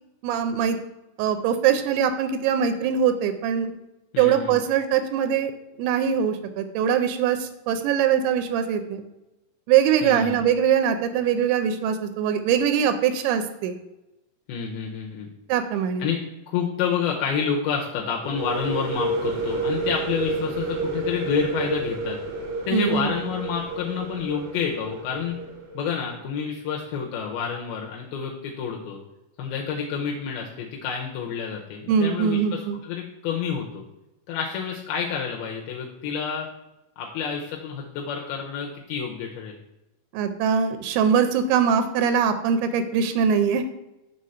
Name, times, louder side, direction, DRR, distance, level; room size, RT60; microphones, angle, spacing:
voice 1, 0.2-0.8 1.2-3.7 4.2-5.5 5.8-9.0 9.7-13.7 15.5-16.1 22.7-23.1 31.9-32.8 40.1-43.6, right 8 dB, 90° right, 8 dB, 2.6 m, -22 dB
voice 2, 4.1-4.6 10.0-10.4 14.5-15.3 16.0-16.2 16.5-22.2 22.6-25.4 25.7-29.0 29.4-33.8 34.3-36.5 37.0-39.6, left 7 dB, 80° left, 0 dB, 2.5 m, -29 dB
sound 1, 18.2-25.8, right 3 dB, 65° right, 2.0 m, -30 dB
6.4 x 4.1 x 5.5 m, 0.94 s
omnidirectional pair, 4.5 m